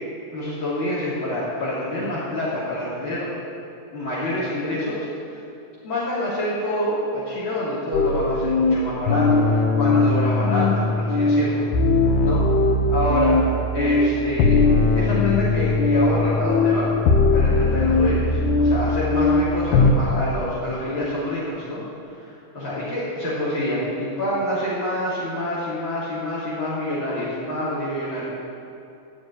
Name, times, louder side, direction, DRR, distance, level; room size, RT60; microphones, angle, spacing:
voice 1, 0.3-3.3 3.9-5.1 5.8-11.7 12.2-12.4 12.9-13.4 13.7-14.6 14.9-16.9 17.3-21.8 22.2-28.2, left 1 dB, 40° left, -11 dB, 3.9 m, -27 dB
sound 1, 7.9-19.9, left 3 dB, 85° left, 2.5 m, -19 dB
15.0 x 6.5 x 9.9 m, 2.6 s
omnidirectional pair, 3.4 m